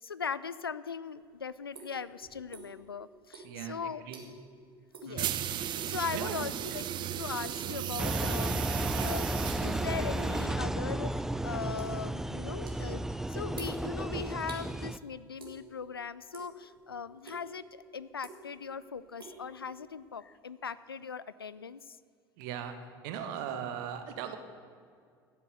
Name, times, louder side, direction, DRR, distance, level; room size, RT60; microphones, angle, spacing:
voice 1, 0.0-4.0 5.0-5.3 5.8-6.8 7.2-9.3 9.6-11.1 11.4-13.0 13.3-22.0, left 6 dB, 85° left, 16 dB, 0.4 m, -39 dB
sound 1, 1.1-2.9 3.2-4.6 4.9-5.2 5.5-6.0 6.5-6.9 7.3-7.7 8.1-8.6 9.1-10.2 10.5-14.6 15.4-15.9 16.2-16.8 17.2-17.4 18.0-18.7 18.9-20.1, right 4 dB, 80° right, 2.3 m, -49 dB
voice 2, 3.4-4.2 5.0-5.4 5.8-6.5 22.4-22.7 23.0-24.4, right 9 dB, 60° right, 7 dB, 1.5 m, -39 dB
sound 2, 5.2-10.8, right 11 dB, 40° right, 0.7 m, -36 dB
Engine, 8.0-15.0, right 1 dB, 5° right, 0.4 m, -33 dB
14.5 x 9.2 x 6.9 m, 2.2 s
figure-of-eight pair, 70°, 12 cm